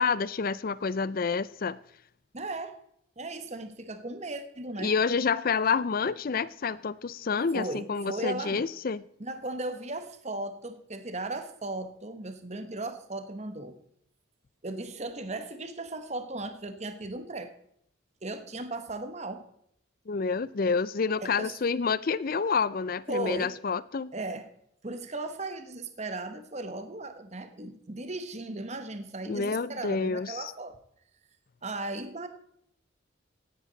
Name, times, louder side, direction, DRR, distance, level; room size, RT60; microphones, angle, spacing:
voice 1, 0.0-1.8 4.8-9.0 20.1-24.1 29.3-30.5, left 5 dB, 45° left, 19 dB, 0.4 m, -28 dB
voice 2, 2.3-2.8 3.2-4.9 7.5-8.7 9.2-13.8 14.6-17.5 18.2-19.5 21.2-21.5 23.1-23.5 24.1-24.5 24.8-30.8 31.6-32.3, right 2 dB, 35° right, 8 dB, 1.0 m, -36 dB
15.5 x 11.0 x 4.0 m, 0.71 s
head